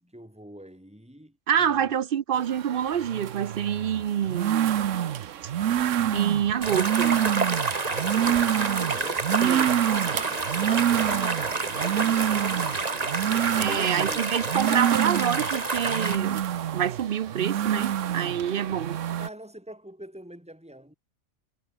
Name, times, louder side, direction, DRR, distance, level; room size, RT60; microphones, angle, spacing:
voice 1, 0.0-1.9 7.8-13.2 13.6-14.6 18.7-20.9, right 1 dB, 5° right, 5.2 m, -45 dB
voice 2, 1.5-4.8 6.1-7.2 9.4-9.7 13.6-16.4 16.7-19.0, right 9 dB, 55° right, 0.7 m, -27 dB
sound 1, 2.4-19.3, right 10 dB, 75° right, 1.2 m, -27 dB
sound 2, 6.6-16.2, right 3 dB, 30° right, 1.7 m, -29 dB
omnidirectional pair, 1.3 m